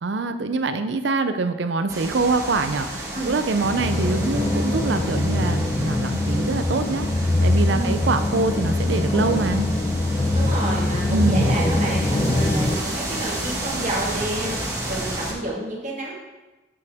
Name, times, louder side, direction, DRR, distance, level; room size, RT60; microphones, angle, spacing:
voice 1, 0.0-9.7 11.1-11.5, right 3 dB, 65° right, 9 dB, 0.5 m, -24 dB
sound 1, 1.9-15.3, right 1 dB, 15° right, 1.3 m, -32 dB
voice 2, 3.1-4.1 7.7-7.9 10.3-16.1, right 1 dB, 40° right, -4 dB, 1.7 m, -30 dB
sound 2, 3.6-12.8, left 2 dB, 25° left, 0.5 m, -23 dB
8.1 x 5.6 x 3.5 m, 1.1 s
head